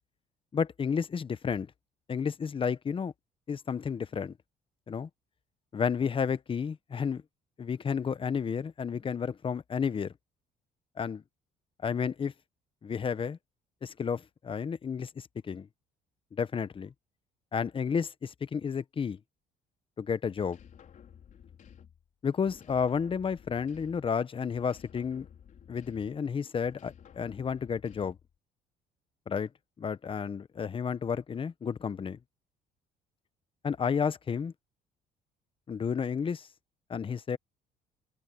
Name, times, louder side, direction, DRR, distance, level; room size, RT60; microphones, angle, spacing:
voice 1, 0.5-1.7 2.1-3.1 3.5-4.3 4.9-5.1 5.7-7.2 7.6-10.1 11.0-11.2 11.8-12.3 12.8-13.4 13.8-15.7 16.3-16.9 17.5-19.2 20.0-20.6 22.2-25.3 25.7-28.2 29.3-29.5 29.8-32.2 33.6-34.5 35.7-36.5 36.9-37.4, left 6 dB, 30° left, 0.9 m, -31 dB
sound 1, 20.4-22.1 22.4-24.2 24.5-26.3 26.6-28.3, left 8 dB, 50° left, 4.8 m, -54 dB
cardioid pair, 110°, 17 cm